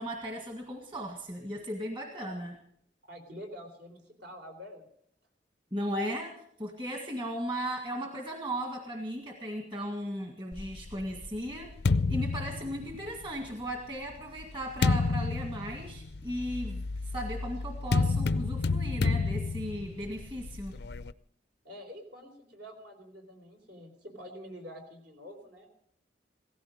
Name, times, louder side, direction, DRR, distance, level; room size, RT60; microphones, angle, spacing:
voice 1, 0.0-2.6 5.7-11.7 12.1-20.8, equal, 25° right, 2 dB, 1.9 m, -36 dB
voice 2, 3.1-4.9 21.6-25.7, equal, 65° right, 4 dB, 4.0 m, -47 dB
sound 1, 10.5-13.3 14.1-21.1, left 3 dB, 65° left, 0.5 m, -30 dB
17.0 x 15.0 x 5.2 m, 0.67 s
head